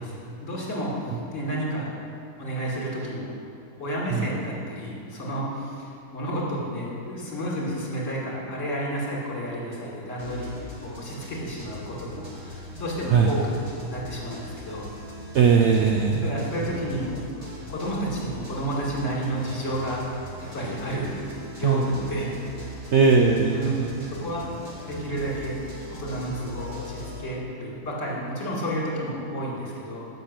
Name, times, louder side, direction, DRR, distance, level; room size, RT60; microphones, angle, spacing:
voice 1, 0.0-2.0 2.4-3.3 3.8-10.5 10.8-13.6 13.9-14.9 16.2-22.3 23.5-23.9 24.2-24.5 24.9-25.6 25.9-30.1, right 1 dB, 50° left, -5 dB, 2.4 m, -31 dB
sound 1, 10.2-27.2, left 1 dB, 20° right, 1.9 m, -40 dB
voice 2, 15.3-16.7 21.6-21.9 22.9-24.0 26.3-26.4, right 5 dB, 75° right, 1 dB, 0.6 m, -20 dB
6.6 x 6.6 x 7.4 m, 2.5 s
omnidirectional pair, 1.7 m